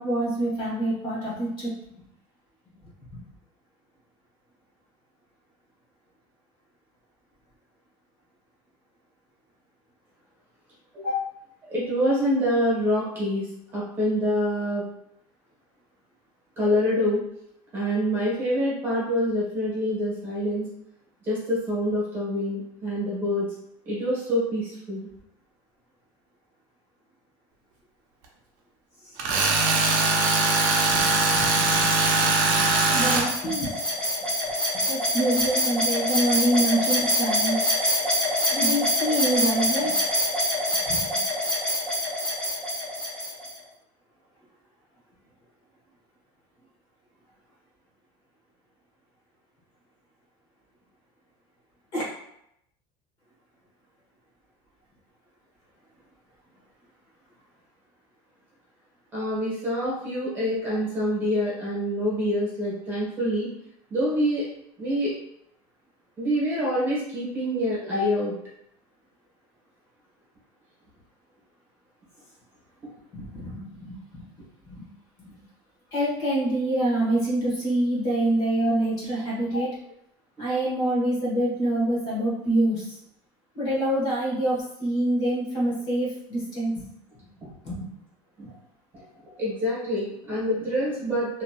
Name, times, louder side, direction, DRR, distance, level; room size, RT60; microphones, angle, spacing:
voice 1, 0.0-2.0 3.1-3.2 29.0-29.1 30.9-33.7 34.7-37.6 38.5-40.0 40.9-41.1 51.9-52.0 73.1-74.2 74.7-74.9 75.2-75.3 75.9-79.7 80.4-83.0 83.5-86.9 87.6-87.8, right 1 dB, 40° left, -6 dB, 1.2 m, -26 dB
voice 2, 11.7-13.5 13.7-14.8 16.6-17.2 17.7-20.6 21.2-23.4 23.8-25.1 59.1-63.5 63.9-64.4 64.8-65.1 66.2-68.3 88.4-88.5 88.9-89.0 89.4-91.4, equal, 20° right, -7 dB, 1.2 m, -26 dB
Tools, 29.2-33.3, right 3 dB, 75° right, 0.7 m, -21 dB
sound 1, 32.5-43.5, equal, 5° left, 0.8 m, -25 dB
2.8 x 2.8 x 2.3 m, 0.76 s
cardioid pair, 165°, 10 cm